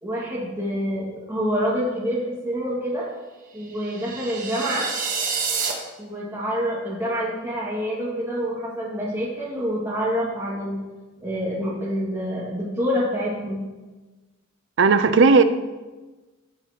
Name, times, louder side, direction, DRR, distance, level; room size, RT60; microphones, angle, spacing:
voice 1, 0.0-3.1 3.5-4.9 6.0-10.8 11.2-13.6, equal, 15° right, -6 dB, 2.0 m, -27 dB
sound 1, 3.7-5.7, right 5 dB, 40° right, 1.2 m, -28 dB
voice 2, 14.8-15.4, right 4 dB, 60° right, 11 dB, 0.5 m, -15 dB
15.5 x 5.6 x 2.9 m, 1.2 s
head